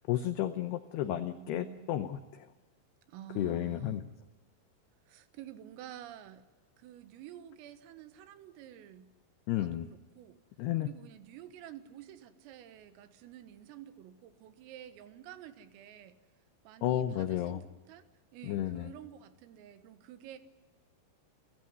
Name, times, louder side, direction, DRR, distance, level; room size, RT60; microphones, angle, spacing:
voice 1, 0.1-2.5 3.4-4.0 9.5-9.9 10.6-10.9 16.8-17.6 18.4-18.9, left 12 dB, 90° left, 10 dB, 2.3 m, -32 dB
voice 2, 1.0-2.0 3.1-4.0 5.1-6.4 6.8-9.1 9.6-10.4 10.8-16.2 16.7-18.1 18.3-20.4, right 11 dB, 80° right, 10 dB, 4.0 m, -50 dB
29.5 x 15.0 x 9.4 m, 1.2 s
omnidirectional pair, 6.0 m